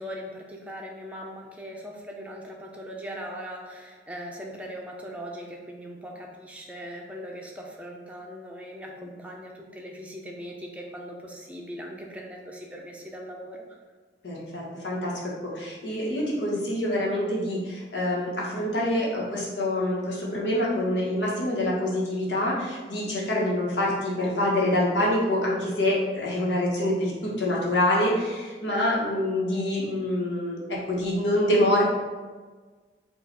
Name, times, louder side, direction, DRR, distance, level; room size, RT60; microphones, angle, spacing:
voice 1, 0.0-13.6, equal, 5° right, -1 dB, 0.5 m, -40 dB
voice 2, 14.2-30.6 30.9-31.8, left 1 dB, 85° left, -5 dB, 1.3 m, -26 dB
4.6 x 2.5 x 4.6 m, 1.4 s
head